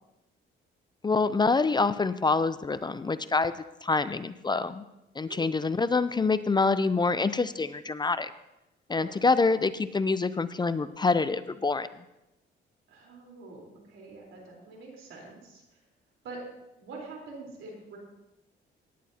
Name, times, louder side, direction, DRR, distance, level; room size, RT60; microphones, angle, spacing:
voice 1, 1.0-3.5 3.8-4.8 5.2-8.3 8.9-11.9, left 4 dB, 20° left, 13 dB, 0.5 m, -26 dB
voice 2, 12.9-15.6 16.2-16.4 16.8-18.0, right 3 dB, 80° right, -1 dB, 3.8 m, -45 dB
17.5 x 10.0 x 2.8 m, 0.93 s
cardioid pair, 90°, 20 cm